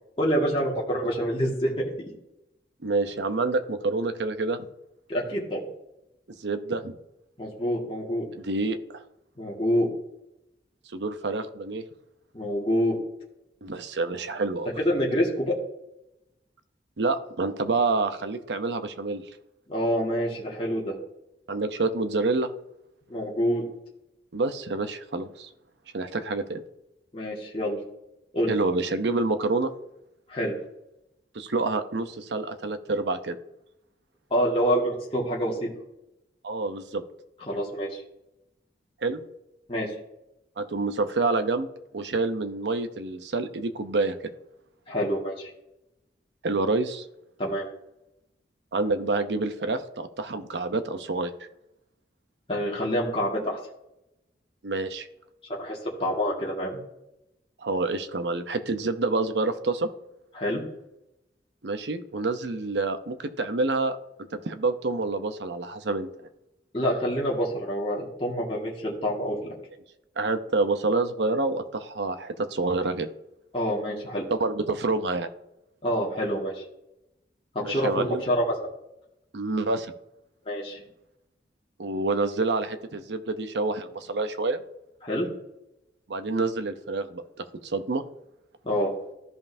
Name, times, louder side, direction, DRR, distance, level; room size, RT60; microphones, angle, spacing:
voice 1, 0.2-2.1 5.1-5.7 7.4-8.3 9.4-9.9 12.3-13.0 14.8-15.6 19.7-21.0 23.1-23.7 27.1-27.8 28.3-28.6 30.3-30.5 34.3-35.7 37.5-38.0 39.7-39.9 44.9-45.5 47.4-47.6 52.5-53.6 55.5-56.8 60.3-60.6 66.7-69.4 73.5-74.3 75.8-76.6 77.5-78.6 80.4-80.8 85.0-85.3 88.6-88.9, equal, 30° left, -4 dB, 1.9 m, -27 dB
voice 2, 2.8-4.7 6.4-7.0 8.4-9.0 10.9-11.8 13.6-14.7 17.0-19.2 21.5-22.5 24.3-25.5 25.9-26.6 28.5-29.7 31.3-33.3 36.4-37.0 39.0-39.2 40.6-41.7 41.9-44.3 46.4-47.0 48.7-51.3 54.6-55.1 57.6-59.9 61.6-64.0 64.3-66.1 70.2-73.1 74.4-75.3 77.6-78.2 79.3-79.9 81.8-84.6 86.1-88.0, right 3 dB, 80° right, 9 dB, 0.7 m, -27 dB
14.0 x 5.4 x 2.7 m, 0.87 s
head